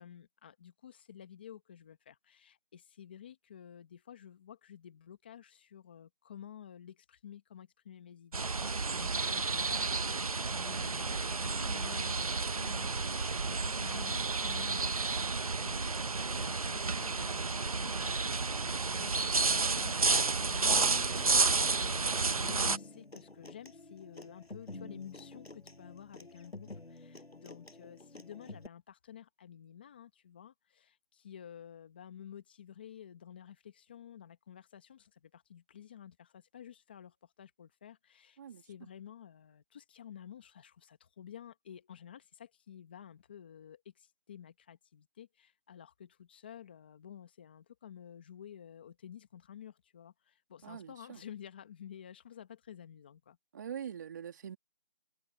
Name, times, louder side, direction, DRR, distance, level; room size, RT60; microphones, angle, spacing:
voice 1, 0.0-8.5 8.9-20.9 21.8-53.4, left 9 dB, 10° left, 1.4 m, -52 dB
sound 1, 8.3-22.8, right 4 dB, 35° right, 1.3 m, -31 dB
Human voice / Acoustic guitar, 20.7-28.7, left 2 dB, 85° left, 7.4 m, -49 dB
voice 2, 50.6-51.2 53.5-54.6, right 8 dB, 20° right, 3.0 m, -44 dB
figure-of-eight pair, 170°, 30 cm